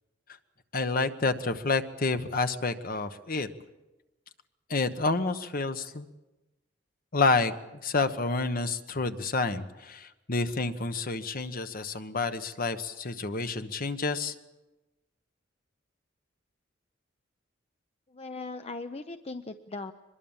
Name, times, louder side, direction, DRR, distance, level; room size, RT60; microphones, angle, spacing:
voice 1, 0.7-3.5 4.7-6.1 7.1-7.5 7.8-14.3, left 3 dB, 50° left, 9 dB, 1.1 m, -29 dB
voice 2, 18.1-19.9, left 3 dB, 35° left, 8 dB, 0.7 m, -39 dB
23.5 x 21.5 x 7.3 m, 1.1 s
head